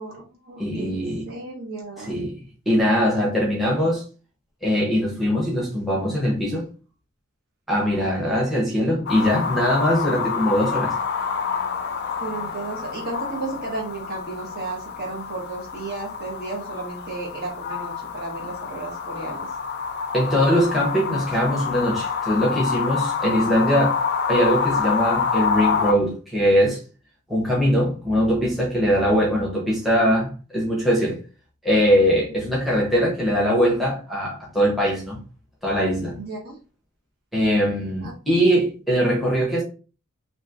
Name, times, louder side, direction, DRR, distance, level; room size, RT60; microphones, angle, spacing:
voice 1, 0.0-2.2 12.2-19.5 23.2-23.6 36.2-36.6 38.0-38.1, right 3 dB, 50° right, 1.2 m, -34 dB
voice 2, 0.6-1.3 2.1-2.4 2.7-4.0 4.6-6.7 7.7-10.9 20.1-24.0 24.3-26.8 27.3-31.2 31.6-35.2 35.6-36.2 37.3-39.6, equal, ahead, 0.8 m, -21 dB
sound 1, 9.1-25.9, left 6 dB, 50° left, 0.3 m, -27 dB
3.0 x 2.6 x 2.5 m
head